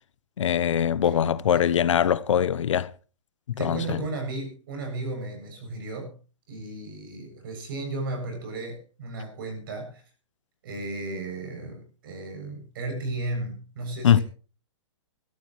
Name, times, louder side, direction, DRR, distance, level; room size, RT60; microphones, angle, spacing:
voice 1, 0.4-2.9 3.5-4.0 14.0-14.2, left 9 dB, 75° left, 0.9 m, -22 dB
voice 2, 3.6-6.1 6.5-10.0 10.6-14.2, right 2 dB, 45° right, 7.6 m, -34 dB
22.5 x 13.0 x 3.2 m
hypercardioid pair, 175°, 16 cm